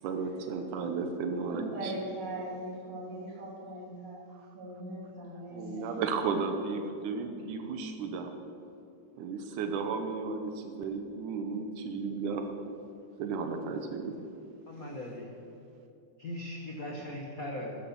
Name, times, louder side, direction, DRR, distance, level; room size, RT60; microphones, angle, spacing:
voice 1, 0.0-1.9 3.7-3.8 5.4-8.3 9.2-12.5 13.2-14.1, right 4 dB, 80° right, 5 dB, 2.3 m, -34 dB
voice 2, 1.5-4.2 4.5-5.7, right 1 dB, 55° right, -5 dB, 4.1 m, -40 dB
voice 3, 14.7-15.3 16.2-17.7, left 1 dB, 55° left, -1 dB, 0.9 m, -39 dB
13.0 x 8.4 x 7.0 m, 2.7 s
omnidirectional pair, 3.5 m